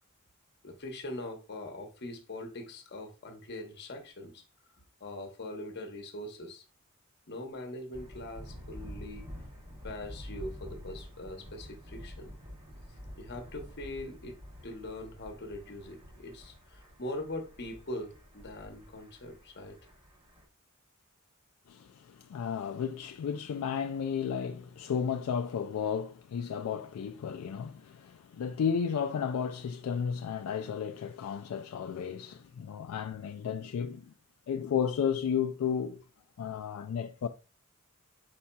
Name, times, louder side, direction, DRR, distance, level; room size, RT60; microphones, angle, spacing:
voice 1, 0.6-4.4 5.0-6.6 7.3-9.3 9.8-12.3 13.2-14.4 14.6-19.8, left 1 dB, 50° left, 0.9 m, -42 dB
Thunder, 7.9-20.5, equal, 25° right, 0.9 m, -48 dB
voice 2, 21.7-34.1 34.5-36.0 36.4-37.3, left 7 dB, 75° left, 0.3 m, -33 dB
4.8 x 4.2 x 2.2 m
head